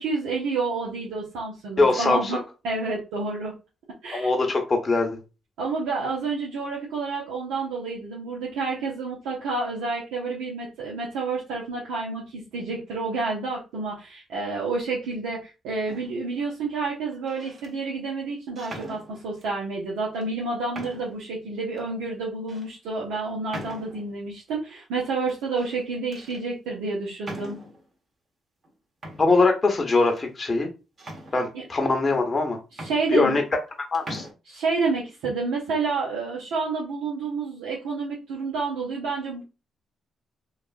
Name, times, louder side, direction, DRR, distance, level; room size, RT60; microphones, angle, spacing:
voice 1, 0.0-3.5 4.0-4.3 5.6-27.6 31.5-31.6 32.8-33.4 34.5-39.4, right 3 dB, 85° right, -4 dB, 0.7 m, -29 dB
voice 2, 1.8-2.4 4.1-5.2 29.2-30.7 31.3-32.6 33.1-33.4 33.9-34.3, left 3 dB, 35° left, 3 dB, 0.8 m, -22 dB
sound 1, 15.9-16.3 17.1-17.7 18.6-19.5 20.2-20.3 20.7-21.3 21.8-21.9 22.5-22.7 23.5-24.2 25.3-25.8 26.1-26.4 27.2-27.9 28.6-28.7 29.0-30.3 31.0-31.8 32.4-32.5 32.7-33.7 33.9-34.3, right 1 dB, 45° right, 1.2 m, -41 dB
3.2 x 2.4 x 2.4 m, 0.29 s
supercardioid pair, 55°, 0 cm